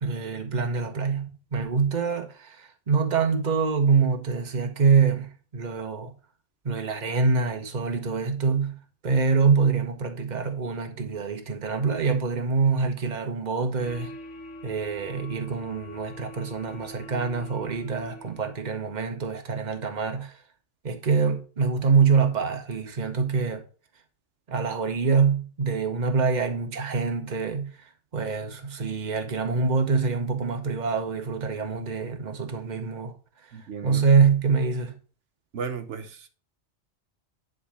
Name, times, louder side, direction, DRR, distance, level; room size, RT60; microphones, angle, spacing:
voice 1, 0.0-6.1 6.6-14.1 14.6-20.3 20.8-23.6 24.5-27.7 28.1-33.1 33.8-35.0, right 5 dB, 40° right, 1.1 m, -25 dB
sound 1, 13.8-18.6, left 1 dB, 85° left, 1.2 m, -44 dB
voice 2, 33.5-34.0 35.5-36.3, right 6 dB, 85° right, 1.2 m, -35 dB
10.0 x 3.6 x 4.9 m
omnidirectional pair, 1.2 m